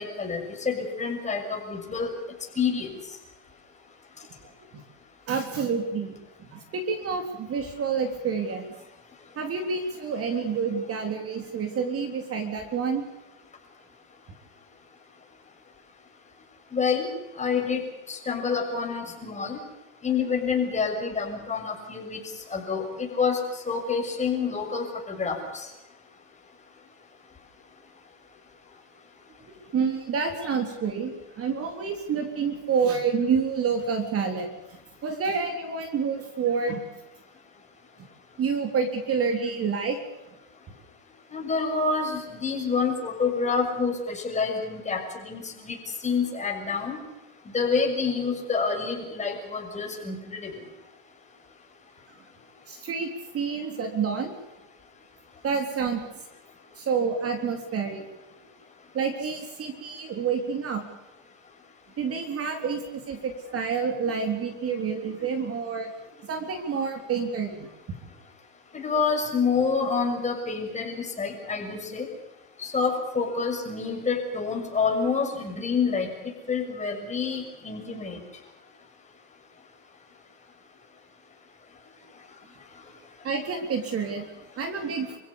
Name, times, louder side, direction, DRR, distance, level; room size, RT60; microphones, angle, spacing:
voice 1, 0.0-2.1 2.6-2.9 16.7-17.1 17.4-19.6 20.0-22.2 22.5-23.4 23.7-25.7 41.3-45.8 46.0-47.0 47.5-50.5 68.7-72.1 72.6-76.1 76.5-78.2, left 5 dB, 15° left, 1 dB, 6.6 m, -27 dB
voice 2, 5.3-6.1 6.4-8.7 9.4-13.0 29.5-34.5 35.0-36.8 38.4-40.0 52.7-53.1 53.3-54.4 55.4-56.0 56.8-58.0 58.9-60.8 62.0-65.9 66.2-67.7 83.2-85.2, right 5 dB, 30° right, 6 dB, 3.7 m, -28 dB
28.5 x 16.5 x 7.1 m, 1.0 s
supercardioid pair, 125°, 42 cm